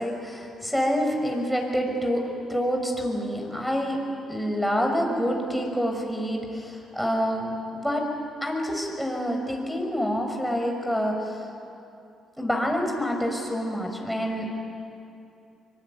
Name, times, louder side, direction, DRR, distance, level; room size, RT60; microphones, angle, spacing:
voice 1, 0.0-4.0 4.3-8.1 8.4-11.4 12.4-14.5, equal, ahead, 2 dB, 6.1 m, -27 dB
24.5 x 24.0 x 9.6 m, 2.6 s
cardioid pair, 90°, 0 cm